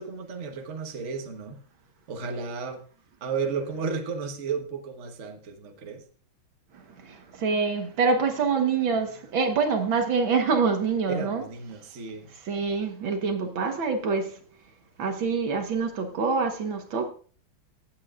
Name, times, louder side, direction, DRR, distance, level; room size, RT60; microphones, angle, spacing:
voice 1, 0.0-1.6 2.1-2.8 3.2-6.0 11.1-12.3, right 5 dB, 40° right, 1.3 m, -33 dB
voice 2, 7.4-11.4 12.5-14.3 15.0-17.1, right 5 dB, 70° right, 2.0 m, -25 dB
17.0 x 8.4 x 2.5 m
omnidirectional pair, 2.3 m